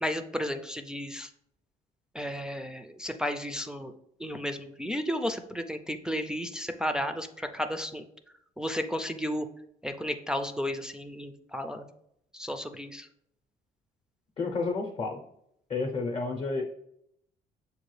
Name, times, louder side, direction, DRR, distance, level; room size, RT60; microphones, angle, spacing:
voice 1, 0.0-1.3 2.1-3.9 4.2-8.1 8.6-9.5 9.8-11.9 12.3-13.1, equal, 5° right, 5 dB, 0.3 m, -33 dB
voice 2, 14.4-15.2 15.7-16.6, left 3 dB, 35° left, 1 dB, 0.6 m, -30 dB
6.7 x 2.3 x 3.1 m, 0.74 s
cardioid pair, 110°, 17 cm